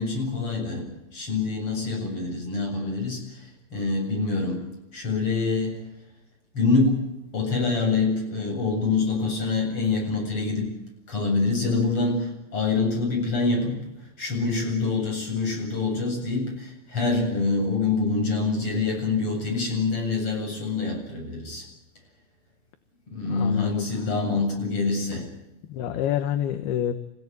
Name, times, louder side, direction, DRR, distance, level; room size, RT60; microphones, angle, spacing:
voice 1, 0.0-5.9 6.5-10.8 11.1-21.7 23.1-25.3, left 3 dB, 30° left, 1 dB, 8.7 m, -26 dB
voice 2, 23.3-23.9 24.3-24.4 25.7-26.9, left 10 dB, 70° left, 9 dB, 2.9 m, -27 dB
29.0 x 17.0 x 9.6 m, 0.94 s
omnidirectional pair, 5.3 m